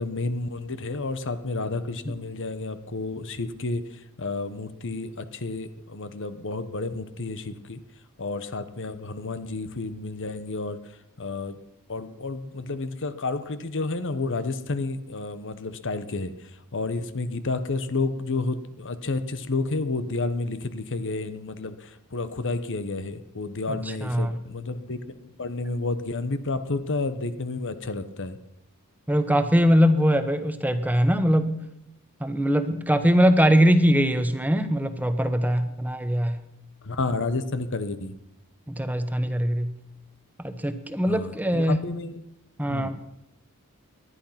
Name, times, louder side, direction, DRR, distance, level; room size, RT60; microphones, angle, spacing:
voice 1, 0.0-3.8 4.2-7.8 8.2-10.8 11.2-11.6 11.9-16.3 16.7-25.0 25.4-28.4 36.8-38.1 41.1-42.2 42.7-43.0, left 3 dB, 55° left, 12 dB, 1.1 m, -30 dB
voice 2, 23.7-24.4 29.1-31.6 32.2-36.4 38.7-39.7 40.4-41.8 42.6-43.0, equal, 5° right, 9 dB, 1.0 m, -22 dB
19.5 x 12.0 x 5.8 m, 0.81 s
head